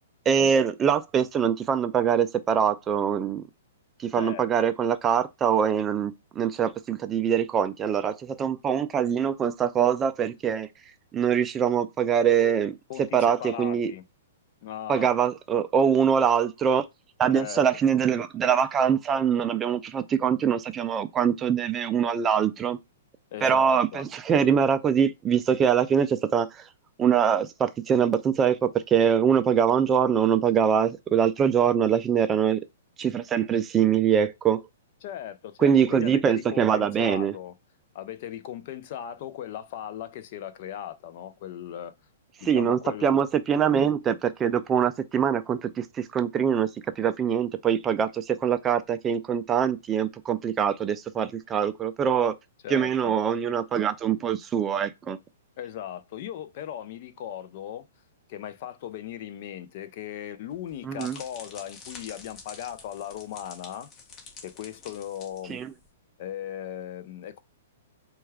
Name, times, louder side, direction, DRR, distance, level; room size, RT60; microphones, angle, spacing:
voice 1, 0.3-3.4 4.0-10.7 11.1-12.8 13.1-13.9 14.9-16.8 17.2-22.8 23.4-26.6 27.0-32.7 33.0-34.6 35.6-37.3 42.4-46.7 47.0-52.3 52.7-55.2 60.8-61.2 65.5-65.7, right 8 dB, 20° right, 0.3 m, -23 dB
voice 2, 4.1-4.7 12.9-14.0 14.6-15.1 17.3-17.6 23.3-24.0 35.0-37.5 37.9-41.9 42.5-43.2 43.7-43.9 52.6-53.1 55.6-57.9 58.3-63.9 64.4-65.6 66.2-67.4, left 10 dB, 50° left, 0.5 m, -38 dB
sound 1, 60.5-65.9, left 5 dB, 35° left, 1.2 m, -47 dB
4.3 x 2.3 x 3.4 m
hypercardioid pair, 135°, 0 cm